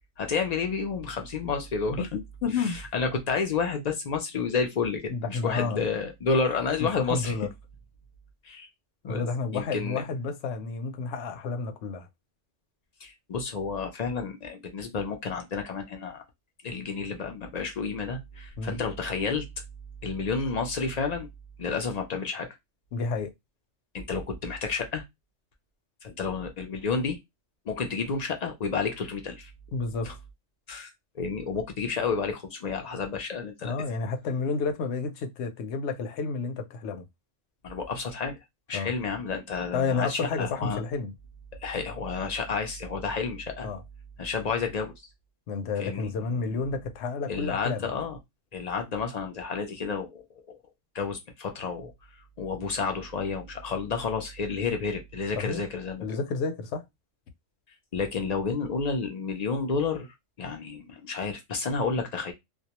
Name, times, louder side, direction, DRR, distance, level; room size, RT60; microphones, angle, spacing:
voice 1, 0.2-2.0 2.6-7.4 8.4-8.7 9.0-9.2 9.5-10.0 13.0-16.2 16.6-19.5 20.0-21.3 21.6-22.5 23.9-25.0 26.0-27.2 27.7-29.5 30.0-30.1 30.7-33.7 37.6-38.4 38.7-40.8 41.6-43.7 44.2-44.9 45.8-46.3 47.3-48.2 48.5-50.4 50.9-51.9 52.4-56.2 57.9-60.1 60.4-62.3, left 5 dB, 60° left, 0.4 m, -30 dB
voice 2, 2.4-2.8 5.1-5.8 6.8-7.5 9.1-12.1 18.6-18.8 22.9-23.3 29.7-30.1 33.6-37.1 38.7-38.9 39.7-41.1 43.6-43.8 45.5-47.9 55.3-55.6 56.0-56.8, left 4 dB, 75° left, 0.8 m, -30 dB
2.3 x 2.1 x 2.8 m
omnidirectional pair, 1.2 m